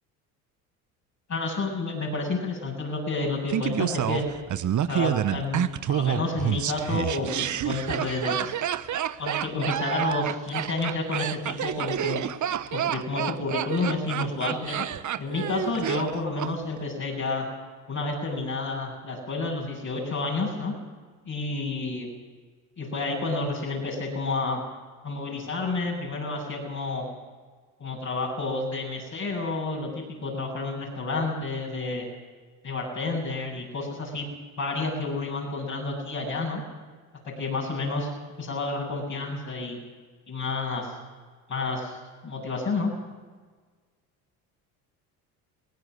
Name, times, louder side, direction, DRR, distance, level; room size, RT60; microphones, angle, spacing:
voice 1, 1.3-4.2 4.9-8.5 9.2-12.2 12.7-14.8 15.2-17.5 17.9-20.7 21.2-22.1 22.8-24.6 25.0-27.0 27.8-32.1 32.6-34.3 34.6-36.6 37.2-38.1 38.4-39.8 40.3-40.9 41.5-42.0 42.2-42.9, left 3 dB, 40° left, -4 dB, 8.0 m, -30 dB
Laughter, 3.5-16.5 16.8-16.9, right 10 dB, 40° right, 1.1 m, -28 dB
23.5 x 18.0 x 6.5 m, 1.5 s
hypercardioid pair, 65°, 44 cm